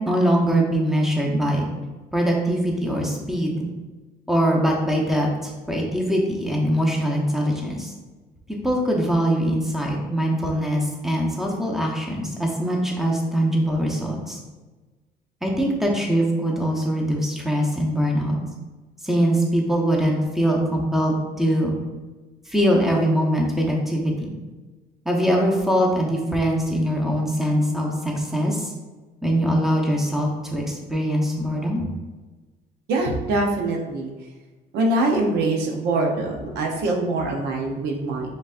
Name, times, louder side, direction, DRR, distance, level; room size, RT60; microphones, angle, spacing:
voice 1, 0.0-1.7 2.1-3.7 4.3-7.9 8.5-14.4 15.4-18.4 19.0-21.7 22.5-24.3 25.0-28.7 29.2-31.8, equal, ahead, -1 dB, 0.9 m, -22 dB
voice 2, 32.9-34.1 34.7-38.3, right 2 dB, 80° right, 1 dB, 0.9 m, -23 dB
5.2 x 3.8 x 2.5 m, 1.2 s
cardioid pair, 110°, 17 cm